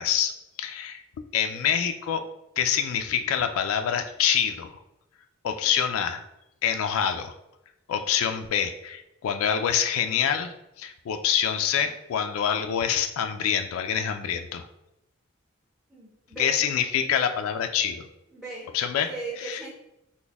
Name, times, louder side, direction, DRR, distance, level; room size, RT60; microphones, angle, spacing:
voice 1, 0.0-2.2 2.6-4.7 5.4-6.3 6.6-7.3 7.9-14.7 16.4-18.1 18.7-19.1 19.4-19.6, left 8 dB, 85° left, 7 dB, 0.3 m, -26 dB
voice 2, 1.5-1.9 5.6-5.8 15.9-16.6 18.3-18.7 19.1-19.7, right 3 dB, ahead, -7 dB, 0.7 m, -38 dB
4.0 x 2.1 x 3.4 m, 0.88 s
head